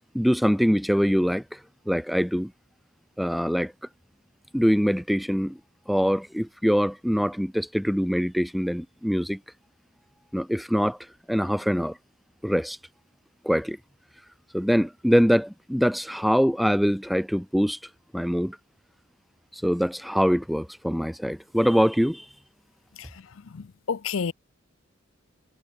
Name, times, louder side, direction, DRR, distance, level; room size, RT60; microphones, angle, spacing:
voice 1, 0.1-1.6 1.9-2.5 3.2-3.7 4.5-5.6 5.9-9.4 10.3-11.0 11.3-12.0 12.4-12.8 13.4-13.8 14.5-17.8 18.1-18.6 19.5-22.3, equal, ahead, 0.5 m, -23 dB
voice 2, 23.5-24.3, left 6 dB, 70° left, 0.5 m, -30 dB
head